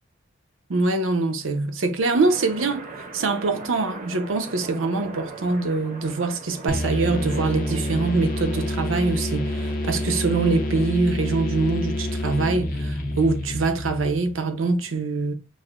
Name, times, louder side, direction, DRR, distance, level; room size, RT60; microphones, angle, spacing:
voice 1, 0.7-2.9 3.1-15.3, right 3 dB, 80° right, 0.6 m, -24 dB
Red Arrows Jet Flyovers, 2.2-10.9, right 2 dB, 40° right, 0.6 m, -40 dB
sound 1, 6.7-14.4, left 1 dB, 45° left, 0.7 m, -28 dB
6.2 x 2.1 x 2.4 m
head